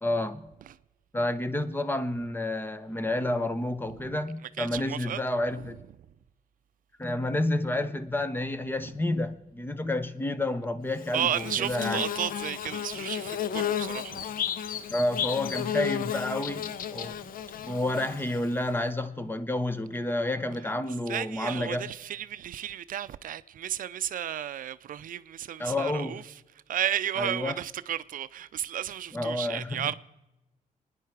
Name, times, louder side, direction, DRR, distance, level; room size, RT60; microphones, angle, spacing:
voice 1, 0.0-0.5 1.1-5.8 7.0-12.0 14.9-17.2 17.6-21.9 25.6-26.2 27.2-27.6 29.1-29.9, left 1 dB, 15° left, 0.9 m, -30 dB
voice 2, 4.6-5.2 5.6-5.7 11.1-14.2 21.1-26.2 26.7-29.9, right 10 dB, 70° right, 0.4 m, -33 dB
Bird / Buzz, 11.0-18.7, left 9 dB, 80° left, 0.6 m, -33 dB
27.0 x 10.0 x 4.7 m
cardioid pair, 105°, 14 cm